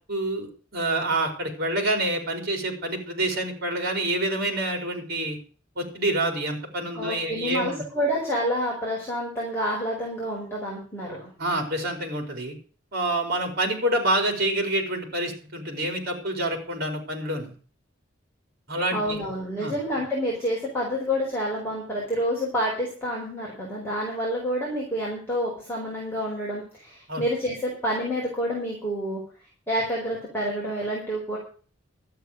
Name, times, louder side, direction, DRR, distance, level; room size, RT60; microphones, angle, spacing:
voice 1, 0.1-5.4 5.8-7.8 11.4-12.6 12.9-17.5 18.7-19.2 19.6-19.7 27.1-27.2, right 1 dB, 50° right, 4 dB, 4.6 m, -27 dB
voice 2, 6.9-11.3 18.9-29.2 29.7-31.4, equal, 10° left, -6 dB, 4.9 m, -28 dB
12.5 x 9.1 x 6.7 m, 0.40 s
head